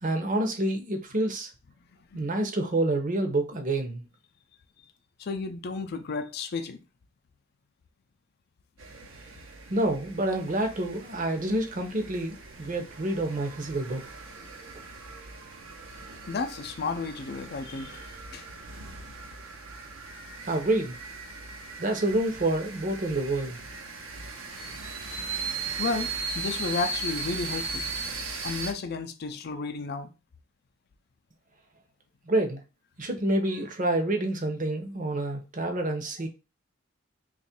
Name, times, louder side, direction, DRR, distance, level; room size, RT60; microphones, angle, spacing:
voice 1, 0.0-1.5 2.1-4.0 9.7-14.0 20.5-21.0 21.8-23.6 32.3-32.6 33.0-36.3, right 1 dB, 40° right, 0.7 m, -28 dB
voice 2, 5.2-6.8 16.3-18.1 18.3-18.5 25.2-25.4 25.8-27.9 28.4-30.1, left 4 dB, 55° left, 0.4 m, -33 dB
sound 1, 8.8-28.7, right 4 dB, 85° right, 0.8 m, -38 dB
3.0 x 2.4 x 4.3 m
head